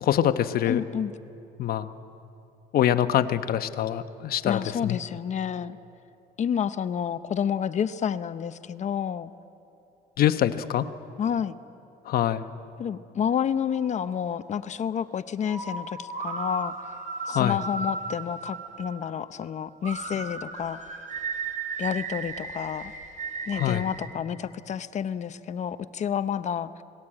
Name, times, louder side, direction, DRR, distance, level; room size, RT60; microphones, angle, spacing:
voice 1, 0.0-0.8 1.6-1.9 2.7-5.0 10.2-10.9 12.0-12.5 17.3-17.6 23.5-23.8, left 11 dB, 60° left, 10 dB, 1.1 m, -24 dB
voice 2, 0.7-1.1 4.4-5.8 6.4-9.3 11.2-11.5 12.8-16.8 17.3-20.8 21.8-22.9 23.5-26.8, left 8 dB, 45° left, 12 dB, 0.7 m, -29 dB
sound 1, 13.7-14.5 15.4-19.4 19.8-24.1, right 4 dB, 50° right, 3.1 m, -35 dB
27.0 x 19.5 x 8.9 m, 2.7 s
cardioid pair, 110°, 17 cm